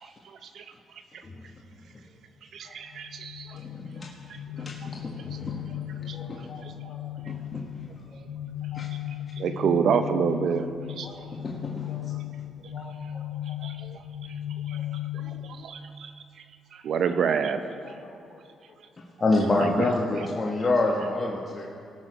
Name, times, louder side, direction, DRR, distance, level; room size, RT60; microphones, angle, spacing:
voice 1, 0.0-0.6 2.5-3.6 6.1-6.2 9.4-10.6 11.0-11.1 13.6-14.0 14.7-14.8 15.1-16.1 16.7-17.6 19.6-19.9, right 6 dB, 65° right, 9 dB, 0.7 m, -28 dB
sound 1, 2.9-15.7, left 12 dB, 85° left, 0.6 m, -36 dB
voice 2, 3.6-4.0 4.5-5.0 5.2-5.6 6.0-6.1 7.3-7.6 8.7-8.9 11.8-11.9 19.2-21.7, left 2 dB, 30° left, -2 dB, 1.2 m, -26 dB
voice 3, 5.0-5.5 6.1-7.0 8.1-8.2 8.7-8.8 11.0-11.1 11.9-12.1 12.7-13.2 14.7-14.8 18.0-18.4 20.2-20.3, left 4 dB, 55° left, -2 dB, 3.2 m, -48 dB
17.5 x 6.4 x 5.0 m, 2.4 s
cardioid pair, 90°, 0 cm